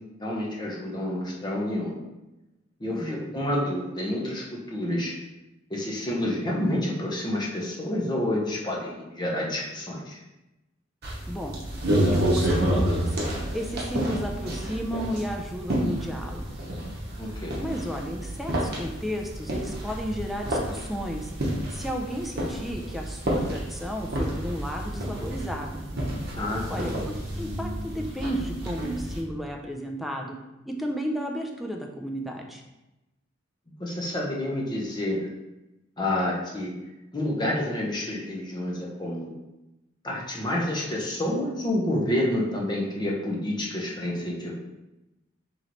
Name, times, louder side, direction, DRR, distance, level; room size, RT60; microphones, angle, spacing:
voice 1, 0.2-2.0 2.8-5.1 5.7-10.2 17.2-17.6 26.4-26.9 33.8-35.3 36.0-36.7 37.1-39.3 40.0-44.6, left 1 dB, 20° left, -2 dB, 0.7 m, -29 dB
voice 2, 2.9-3.3 11.3-11.6 12.0-13.1 13.5-16.6 17.6-21.3 21.7-25.8 26.7-30.3 30.7-32.6, equal, ahead, 1 dB, 0.4 m, -33 dB
sound 1, 11.0-29.2, right 1 dB, 55° right, 0.8 m, -29 dB
3.1 x 3.1 x 3.9 m, 0.97 s
head